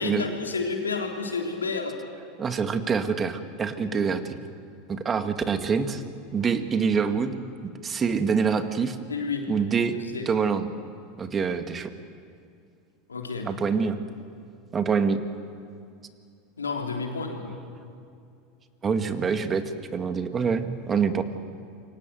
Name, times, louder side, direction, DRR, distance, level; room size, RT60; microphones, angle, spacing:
voice 1, 0.0-2.0 3.9-4.0 9.1-9.5 9.9-10.3 13.1-13.5 16.6-17.5, left 4 dB, 80° left, 2 dB, 3.6 m, -30 dB
voice 2, 2.4-4.4 4.9-6.0 6.3-7.4 7.8-9.0 9.5-10.0 10.3-10.7 11.2-11.9 13.5-14.0 14.7-15.2 18.8-19.6 19.9-21.2, right 6 dB, 25° right, 8 dB, 2.2 m, -25 dB
28.5 x 24.5 x 8.0 m, 2.4 s
figure-of-eight pair, 80°, 0 cm